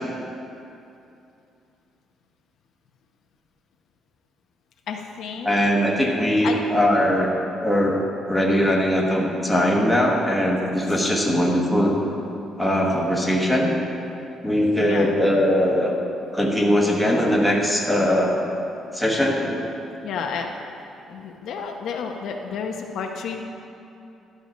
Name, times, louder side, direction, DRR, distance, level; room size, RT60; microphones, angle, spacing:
voice 1, 4.9-5.6 6.4-6.6 14.8-15.2 20.0-20.5 21.1-23.4, left 6 dB, 65° left, 2 dB, 0.8 m, -31 dB
voice 2, 5.4-7.3 7.6-11.9 12.6-13.8 14.4-16.0 16.3-18.4 18.9-19.7, equal, ahead, -3 dB, 1.1 m, -20 dB
12.0 x 5.4 x 6.2 m, 2.7 s
cardioid pair, 170°, 0 cm